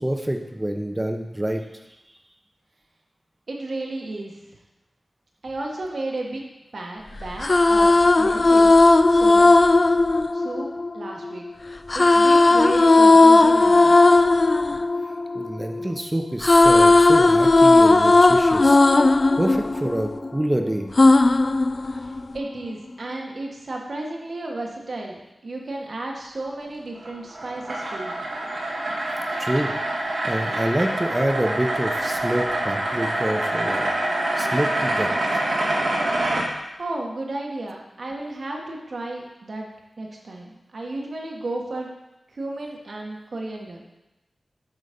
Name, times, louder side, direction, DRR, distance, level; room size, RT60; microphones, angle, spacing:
voice 1, 0.0-1.7 14.3-14.5 15.3-18.8 19.4-20.9 29.4-29.7 30.2-33.9 34.4-35.4, right 1 dB, 20° right, 4 dB, 0.8 m, -27 dB
voice 2, 3.5-4.4 5.4-6.4 6.7-8.8 9.1-9.5 10.3-10.7 10.9-11.5 11.9-13.9 21.9-28.2 36.8-39.7 40.0-41.9 42.3-43.8, right 2 dB, 65° right, 0 dB, 1.4 m, -33 dB
sound 1, 7.2-11.3 11.9-15.9 16.2-20.5 21.0-22.4, left 2 dB, 45° left, 0.3 m, -16 dB
sound 2, 27.0-36.4, right 1 dB, 80° right, 1.7 m, -26 dB
8.1 x 4.0 x 5.2 m, 0.98 s
wide cardioid pair, 60°, 0 cm